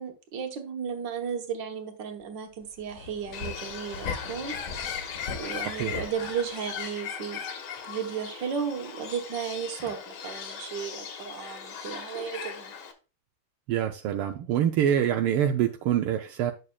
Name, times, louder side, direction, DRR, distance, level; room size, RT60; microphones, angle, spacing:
voice 1, 0.0-4.6 5.4-7.4 7.8-12.7, right 7 dB, 60° right, 1.7 m, -34 dB
sound 1, 2.2-2.3 2.6-6.8, left 4 dB, 40° left, 1.4 m, -40 dB
Bird, 3.3-12.9, left 7 dB, 75° left, 2.0 m, -38 dB
voice 2, 5.7-6.0 13.7-16.5, right 10 dB, 80° right, 1.5 m, -25 dB
9.8 x 6.6 x 2.3 m
omnidirectional pair, 2.4 m